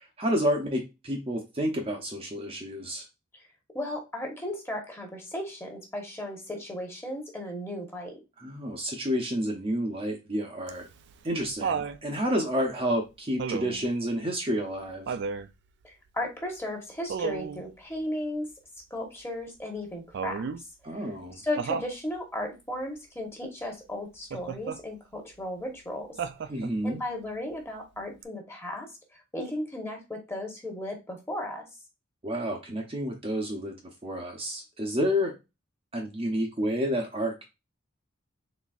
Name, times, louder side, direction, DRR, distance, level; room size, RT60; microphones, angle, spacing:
voice 1, 0.2-3.0 8.4-10.9 11.2-15.1 20.8-21.4 26.5-27.0 32.2-33.7 34.0-35.3 35.9-37.4, equal, 25° right, 1 dB, 0.7 m, -29 dB
voice 2, 3.7-8.1 15.8-18.5 18.9-20.4 21.0-21.1 21.4-26.1 26.8-28.9 29.3-31.7, left 1 dB, 10° left, 1 dB, 1.1 m, -35 dB
Laughter, 10.7-12.0 13.4-13.9 15.1-15.5 17.1-17.6 20.1-20.6 21.6-21.9 24.3-24.8 26.2-26.8 28.2-28.3, right 6 dB, 55° right, 0.3 m, -32 dB
4.0 x 3.5 x 2.4 m, 0.24 s
head